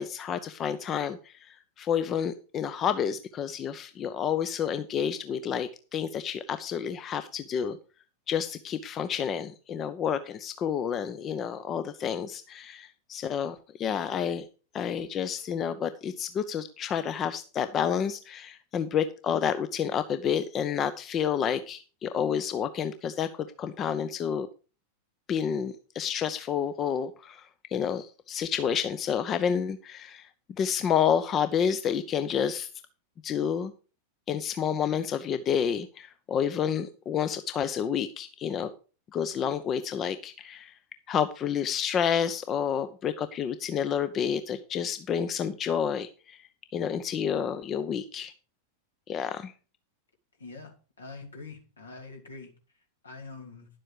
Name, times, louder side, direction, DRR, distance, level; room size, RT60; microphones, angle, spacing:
voice 1, 0.0-7.8 8.3-14.5 14.7-24.5 25.3-30.3 30.6-32.7 33.2-33.7 34.3-38.7 39.1-40.7 41.1-46.4 46.7-48.3 49.1-49.5, left 8 dB, 30° left, 11 dB, 0.7 m, -29 dB
voice 2, 50.4-50.7 51.0-53.7, left 3 dB, 75° left, 2 dB, 2.8 m, -45 dB
11.0 x 7.6 x 4.8 m, 0.35 s
figure-of-eight pair, 90°, 0 cm